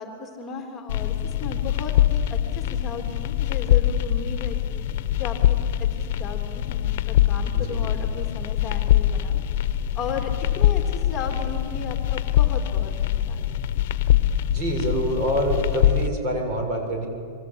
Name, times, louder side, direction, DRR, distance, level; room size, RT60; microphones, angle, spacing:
voice 1, 0.0-4.8 5.2-9.4 9.9-13.4, left 5 dB, 20° left, 2 dB, 3.3 m, -35 dB
sound 1, 0.9-16.1, left 12 dB, 60° left, 1.1 m, -23 dB
voice 2, 14.5-17.1, right 1 dB, 40° right, 3 dB, 6.8 m, -26 dB
26.5 x 24.5 x 8.9 m, 2.4 s
supercardioid pair, 140°, 0 cm